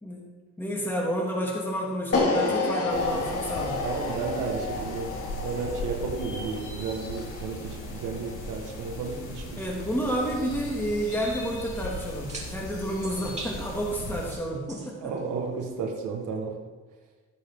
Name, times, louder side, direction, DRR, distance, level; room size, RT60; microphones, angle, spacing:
voice 1, 0.6-3.8 9.6-15.1, equal, 5° left, -2 dB, 2.3 m, -30 dB
sound 1, 2.1-8.3, left 3 dB, 50° left, 2.4 m, -30 dB
sound 2, 2.9-14.3, left 1 dB, 85° left, 3.4 m, -38 dB
voice 2, 3.8-5.1 5.4-9.6 15.0-16.5, right 5 dB, 85° right, 2 dB, 1.6 m, -33 dB
sound 3, 9.6-16.3, right 2 dB, 20° right, 3.2 m, -47 dB
17.0 x 7.4 x 3.7 m, 1.4 s
cardioid pair, 90°, 30 cm